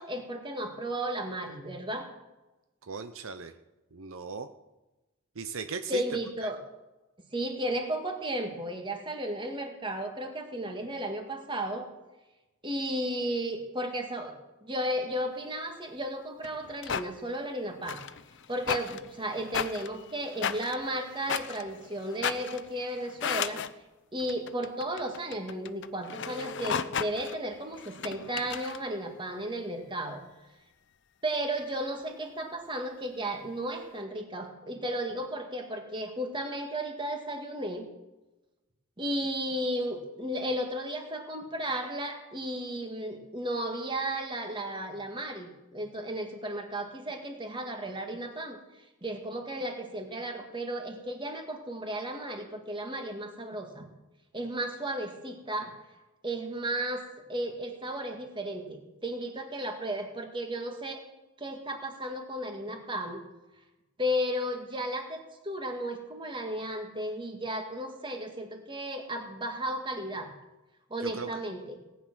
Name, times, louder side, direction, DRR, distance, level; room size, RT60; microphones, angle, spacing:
voice 1, 0.0-2.1 5.9-6.6 7.3-11.9 12.6-18.0 18.5-23.7 24.1-30.2 31.2-37.9 39.0-48.6 49.0-53.9 54.3-55.8 56.2-57.0 57.3-61.0 61.4-63.2 64.0-70.3 70.9-71.8, right 1 dB, 20° right, 4 dB, 2.0 m, -34 dB
voice 2, 2.8-3.5 3.9-4.5 5.4-6.0 6.4-6.5 71.0-71.3, right 5 dB, 70° right, 9 dB, 0.8 m, -37 dB
sound 1, 16.4-17.1 17.8-23.7 24.2-28.8, left 7 dB, 55° left, 0.7 m, -35 dB
18.5 x 9.9 x 6.2 m, 1.0 s
head